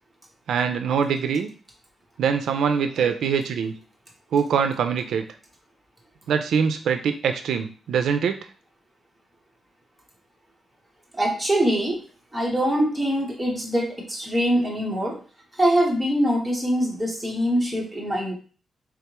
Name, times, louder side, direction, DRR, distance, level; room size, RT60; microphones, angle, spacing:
voice 1, 0.5-1.5 2.2-3.7 4.3-5.2 6.3-8.4, right 6 dB, 85° right, 7 dB, 0.3 m, -23 dB
voice 2, 11.1-12.0 12.3-15.2 15.6-18.3, equal, 5° right, -3 dB, 1.0 m, -23 dB
3.5 x 3.4 x 2.9 m, 0.39 s
wide cardioid pair, 155°, 0 cm